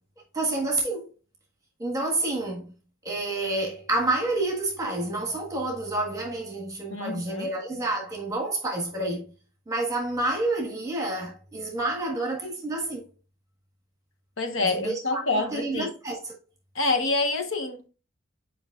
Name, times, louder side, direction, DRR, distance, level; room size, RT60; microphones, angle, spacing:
voice 1, 0.3-1.1 1.8-2.7 3.0-9.3 9.7-13.0 14.6-16.3, right 2 dB, 15° right, 1.5 m, -29 dB
voice 2, 6.9-7.5 14.4-15.9 16.7-17.9, left 3 dB, 70° left, 1.2 m, -27 dB
8.7 x 5.2 x 2.4 m
head